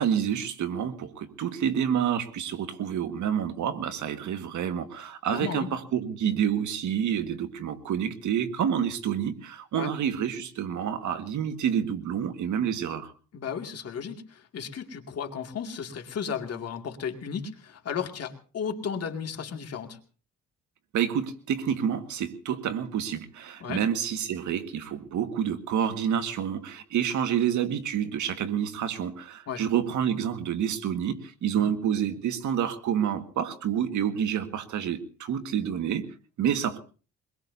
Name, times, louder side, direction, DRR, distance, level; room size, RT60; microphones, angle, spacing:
voice 1, 0.0-13.1 20.9-36.1 36.4-36.8, right 8 dB, 75° right, 1.8 m, -28 dB
voice 2, 5.3-5.7 9.7-9.9 13.3-20.0 23.6-23.8 29.5-29.6 31.5-31.7, left 7 dB, 55° left, 2.5 m, -34 dB
23.0 x 21.5 x 2.7 m
cardioid pair, 90°, 30 cm